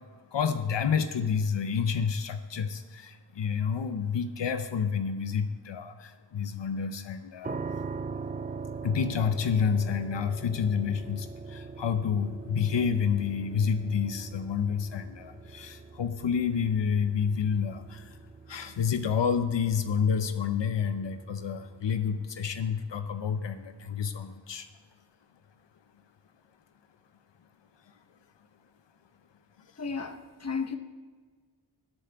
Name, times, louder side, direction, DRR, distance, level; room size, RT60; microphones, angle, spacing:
voice 1, 0.3-7.6 8.8-18.2 18.5-24.7, left 6 dB, 85° left, 0.7 m, -29 dB
sound 1, 7.4-22.3, right 4 dB, 25° right, 0.3 m, -42 dB
voice 2, 29.8-30.8, left 5 dB, 35° left, 0.9 m, -33 dB
20.0 x 7.5 x 3.5 m
wide cardioid pair, 85°, 42 cm